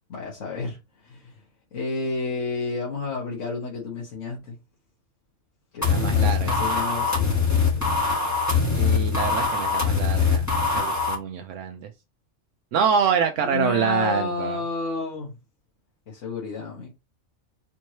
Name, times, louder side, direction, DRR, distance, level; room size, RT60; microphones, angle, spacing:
voice 1, 0.1-1.4 1.7-4.5 5.7-8.0 13.4-15.4 16.1-16.9, left 3 dB, 80° left, 1.6 m, -31 dB
sound 1, 5.8-11.2, left 5 dB, 15° left, 1.1 m, -22 dB
voice 2, 5.8-6.6 8.7-11.9 12.7-14.6, right 7 dB, 80° right, 0.9 m, -26 dB
4.4 x 3.0 x 2.8 m
omnidirectional pair, 1.3 m